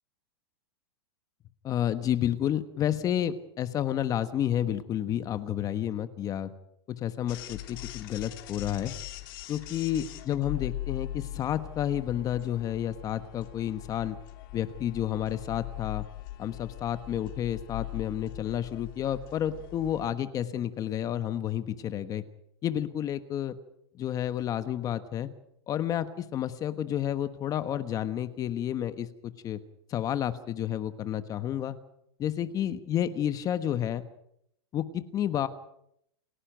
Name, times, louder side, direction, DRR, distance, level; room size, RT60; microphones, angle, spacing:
voice 1, 1.6-6.5 6.9-8.9 9.5-14.2 14.5-16.1 16.4-22.2 22.6-23.6 24.0-25.3 25.7-29.6 29.9-31.8 32.2-34.0 34.7-35.5, left 10 dB, 25° left, 11 dB, 1.3 m, -30 dB
sound 1, 7.3-20.1, left 15 dB, 55° left, 3.0 m, -41 dB
29.0 x 11.5 x 9.2 m, 0.75 s
supercardioid pair, 140°, 14 cm